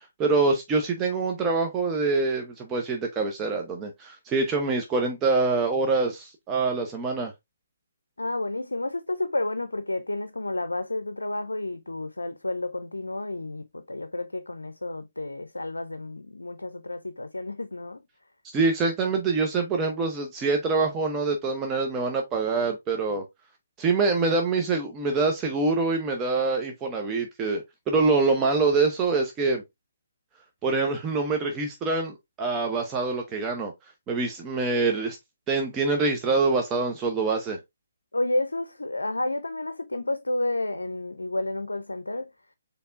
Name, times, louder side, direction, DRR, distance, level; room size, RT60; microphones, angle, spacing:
voice 1, 0.2-7.3 18.5-23.2 23.8-29.6 30.6-33.7 34.1-35.2 35.5-37.6, right 3 dB, 20° right, 0.8 m, -25 dB
voice 2, 8.2-18.0 38.1-42.3, left 2 dB, 90° left, 0.4 m, -31 dB
4.3 x 3.4 x 2.5 m
figure-of-eight pair, 140°, 0 cm